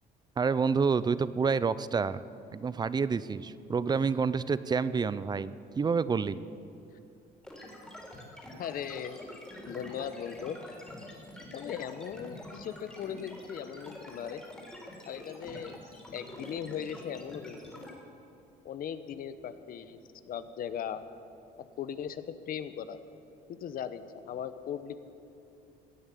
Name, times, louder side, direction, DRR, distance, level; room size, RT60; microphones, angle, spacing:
voice 1, 0.4-2.2 2.5-6.4, right 5 dB, 25° right, 16 dB, 0.5 m, -28 dB
sound 1, 7.4-17.9, left 1 dB, 5° left, 3.6 m, -46 dB
voice 2, 8.6-9.2 9.7-10.6 11.5-14.4 15.1-15.8 16.1-17.9 18.6-21.0 21.6-23.0 23.5-25.0, left 8 dB, 60° left, 12 dB, 0.9 m, -38 dB
16.0 x 9.3 x 8.4 m, 2.7 s
cardioid pair, 110°, 17 cm